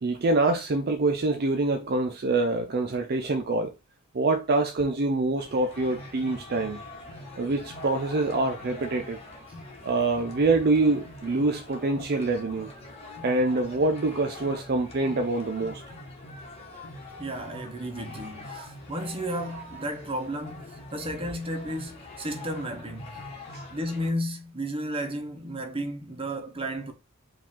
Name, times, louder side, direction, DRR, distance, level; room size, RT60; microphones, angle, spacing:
voice 1, 0.0-3.7 4.1-6.8 7.4-9.2 9.8-12.7 13.2-15.8 23.5-23.6, right 2 dB, 45° right, 0.4 m, -25 dB
sound 1, 5.4-24.1, left 1 dB, 30° left, 1.3 m, -43 dB
voice 2, 17.2-23.3 23.7-26.9, equal, 25° right, 0.8 m, -33 dB
5.0 x 2.4 x 3.6 m
head